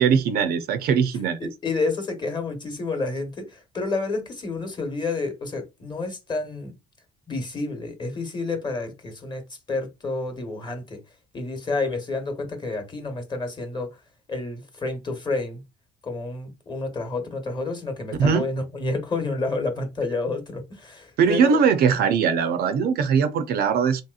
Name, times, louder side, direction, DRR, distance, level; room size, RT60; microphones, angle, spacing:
voice 1, 0.0-1.4 18.2-18.5 21.2-24.0, right 6 dB, 70° right, 0.5 m, -20 dB
voice 2, 1.4-6.7 7.3-9.4 9.7-11.0 11.3-13.9 14.3-15.6 16.0-21.6, left 3 dB, 25° left, 1.0 m, -29 dB
3.1 x 2.8 x 2.4 m
cardioid pair, 110°, 17 cm